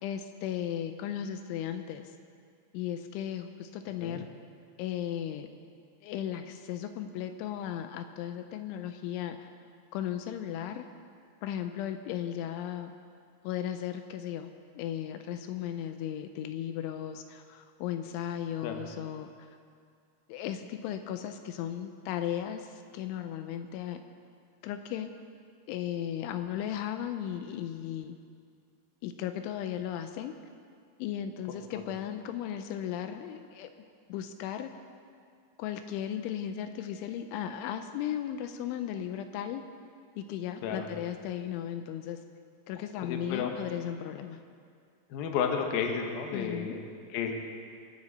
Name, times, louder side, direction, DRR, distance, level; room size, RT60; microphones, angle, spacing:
voice 1, 0.0-2.1 2.7-4.3 4.8-5.5 6.0-9.5 9.9-10.9 11.4-12.9 13.4-19.5 20.3-24.0 24.6-25.1 25.7-28.2 29.0-30.3 31.0-33.7 34.1-34.7 35.6-39.6 40.2-42.2 42.7-44.4 46.3-46.8, left 10 dB, 85° left, 8 dB, 3.0 m, -36 dB
voice 2, 43.0-43.5 45.1-46.8 47.1-47.3, left 6 dB, 65° left, 3 dB, 2.5 m, -32 dB
23.0 x 10.0 x 4.2 m, 2.2 s
omnidirectional pair, 5.5 m